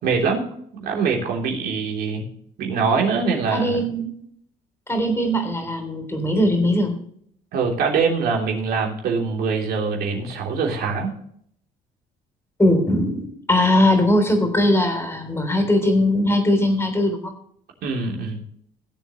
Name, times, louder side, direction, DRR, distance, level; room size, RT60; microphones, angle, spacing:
voice 1, 0.0-0.4 0.7-2.2 2.6-3.8 7.5-11.2 17.8-18.4, right 5 dB, 70° right, 0 dB, 3.3 m, -23 dB
voice 2, 3.5-4.2 4.9-7.0 12.6-17.3, left 1 dB, 15° left, 5 dB, 3.4 m, -20 dB
17.0 x 7.7 x 3.1 m, 0.66 s
cardioid pair, 110°, 17 cm